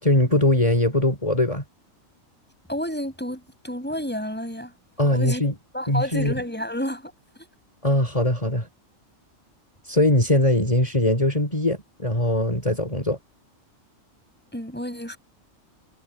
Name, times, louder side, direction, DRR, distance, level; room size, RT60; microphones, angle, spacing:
voice 1, 0.0-1.6 5.0-5.5 5.9-6.3 7.8-8.7 9.8-13.2, left 1 dB, 25° left, 4.8 m, -21 dB
voice 2, 2.7-4.7 5.1-5.4 5.7-7.1 7.4-7.5 14.5-15.2, equal, 5° left, 7.0 m, -30 dB
omnidirectional pair, 1.4 m